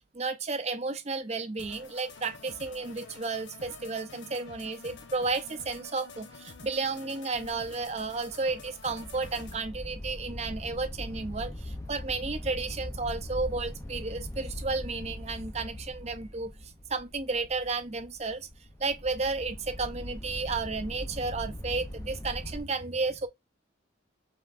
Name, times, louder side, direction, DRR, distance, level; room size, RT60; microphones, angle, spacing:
voice 1, 0.1-18.5 18.8-23.3, right 3 dB, 35° right, 0.6 m, -33 dB
sound 1, 1.6-9.6, left 4 dB, 65° left, 0.8 m, -48 dB
sound 2, 7.3-22.6, left 1 dB, 15° left, 0.5 m, -41 dB
5.3 x 3.6 x 2.5 m
head